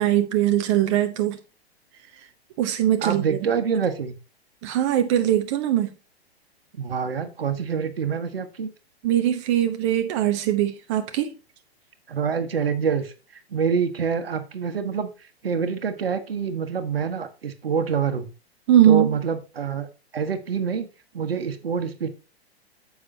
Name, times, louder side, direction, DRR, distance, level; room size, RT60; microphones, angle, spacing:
voice 1, 0.0-1.4 2.6-3.4 4.6-5.9 9.0-11.3 18.7-19.1, right 11 dB, 30° right, 0.7 m, -21 dB
voice 2, 3.0-4.2 6.7-8.7 12.1-13.1 13.5-15.1 15.4-18.3 18.8-19.9 20.1-20.9 21.1-22.1, right 6 dB, 65° right, 1.3 m, -26 dB
9.8 x 7.1 x 2.8 m
figure-of-eight pair, 110°, 32 cm